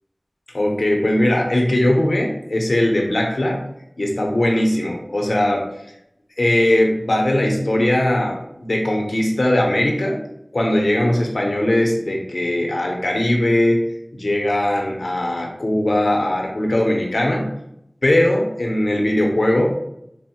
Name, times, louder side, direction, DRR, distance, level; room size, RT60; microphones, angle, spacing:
voice 1, 0.5-3.6 4.0-5.6 6.4-10.2 10.5-13.8 14.1-17.5 18.0-19.7, left 1 dB, 85° left, 1 dB, 0.6 m, -19 dB
4.3 x 2.0 x 2.8 m, 0.79 s
wide cardioid pair, 50°, 0 cm